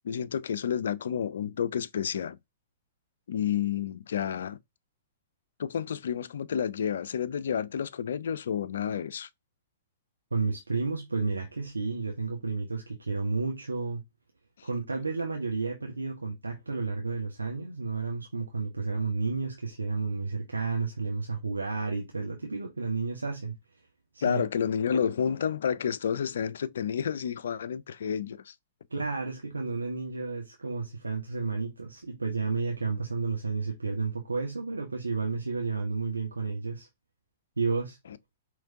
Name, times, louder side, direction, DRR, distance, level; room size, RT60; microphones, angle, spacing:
voice 1, 0.0-2.4 3.3-4.6 5.6-9.3 14.6-14.7 24.2-28.5, left 8 dB, 60° left, 0.4 m, -30 dB
voice 2, 10.3-14.0 14.6-23.5 24.1-24.4 28.9-36.9 37.6-38.0, right 4 dB, 80° right, 0.9 m, -31 dB
4.9 x 3.1 x 2.7 m
figure-of-eight pair, 110°, 0 cm